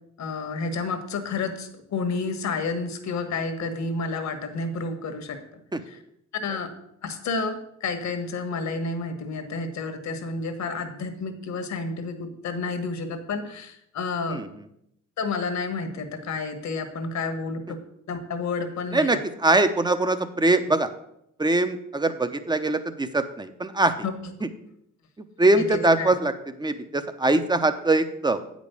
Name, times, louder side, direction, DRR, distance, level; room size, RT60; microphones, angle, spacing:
voice 1, 0.2-5.4 6.4-6.7 7.0-14.4 15.2-17.8 18.1-19.2 24.0-24.1 25.6-26.1, left 4 dB, 65° left, 7 dB, 1.4 m, -30 dB
voice 2, 14.3-14.7 18.9-20.9 21.4-23.9 24.4-24.5 25.4-28.4, right 2 dB, 15° right, 10 dB, 0.8 m, -22 dB
8.6 x 5.2 x 6.8 m, 0.77 s
cardioid pair, 90°, 30 cm